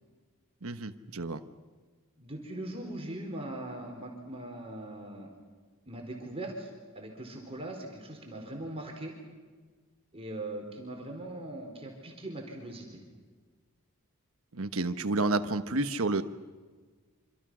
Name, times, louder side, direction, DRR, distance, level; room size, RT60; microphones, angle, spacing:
voice 1, 0.6-1.4 14.5-16.2, right 2 dB, 70° right, 9 dB, 1.3 m, -30 dB
voice 2, 2.2-5.3 5.9-6.7 6.9-9.1 10.1-13.0, right 1 dB, 25° right, 1 dB, 4.4 m, -40 dB
26.5 x 26.5 x 6.3 m, 1.5 s
head